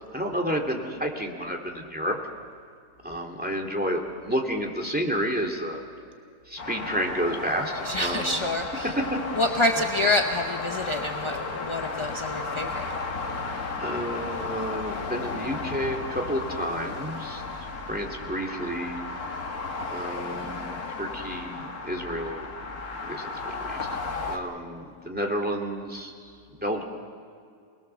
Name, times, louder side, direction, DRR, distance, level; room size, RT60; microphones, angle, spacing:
voice 1, 0.1-2.2 3.0-5.8 6.5-8.3 13.8-17.4 17.9-19.2 19.9-20.6 21.0-22.5 23.0-23.9 24.2-26.1 26.6-26.8, equal, 5° right, 2 dB, 2.3 m, -30 dB
sound 1, 6.6-24.4, left 3 dB, 65° left, 2.0 m, -34 dB
voice 2, 7.8-9.0 9.3-12.9, left 1 dB, 30° left, 4 dB, 0.6 m, -27 dB
27.5 x 20.5 x 6.9 m, 2.2 s
omnidirectional pair, 1.7 m